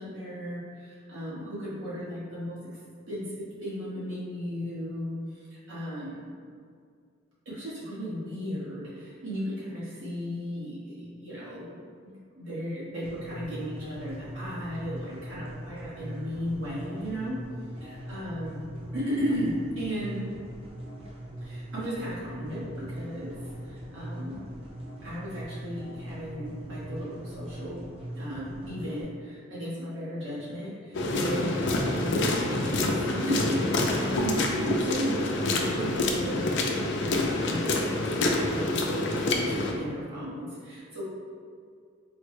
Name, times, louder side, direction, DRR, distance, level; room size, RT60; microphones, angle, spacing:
voice 1, 0.0-2.6 3.1-6.2 7.4-17.4 17.8-18.6 18.9-20.3 21.4-23.4 23.6-24.4 25.0-27.9 28.1-32.3 32.6-36.6 36.9-41.1, equal, 90° right, -10 dB, 1.2 m, -35 dB
sound 1, 13.0-29.0, right 1 dB, 30° right, 0.6 m, -41 dB
sound 2, 30.9-39.7, left 2 dB, 65° left, 0.4 m, -27 dB
4.2 x 2.1 x 3.1 m, 2.2 s
head